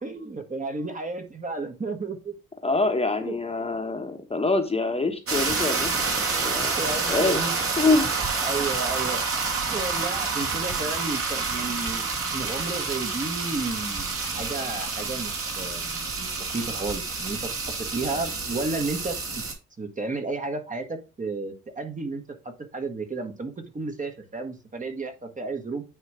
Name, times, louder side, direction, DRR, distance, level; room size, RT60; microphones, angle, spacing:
voice 1, 0.0-2.3 3.2-3.3 6.8-7.6 8.4-9.2 9.7-19.2 19.8-25.8, right 3 dB, 25° right, 5 dB, 1.3 m, -32 dB
voice 2, 2.6-5.9 6.3-6.7 7.1-8.1, left 3 dB, 20° left, 5 dB, 1.2 m, -25 dB
sound 1, 5.3-19.5, right 4 dB, 50° right, 2.2 m, -28 dB
9.2 x 3.1 x 4.8 m, 0.31 s
cardioid pair, 90°, 30 cm